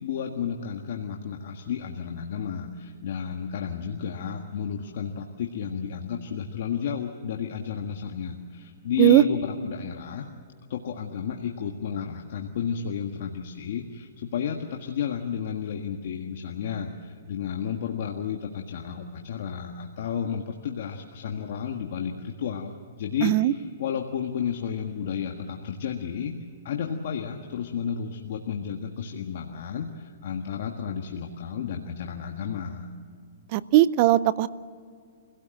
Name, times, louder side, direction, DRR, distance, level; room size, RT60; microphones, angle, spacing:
voice 1, 0.0-10.3 10.7-26.3 26.6-32.9, left 7 dB, 55° left, 2 dB, 1.6 m, -32 dB
voice 2, 23.2-23.5 33.5-34.5, right 14 dB, 35° right, 18 dB, 0.6 m, -18 dB
26.0 x 17.0 x 7.8 m, 2.1 s
hypercardioid pair, 160°, 0 cm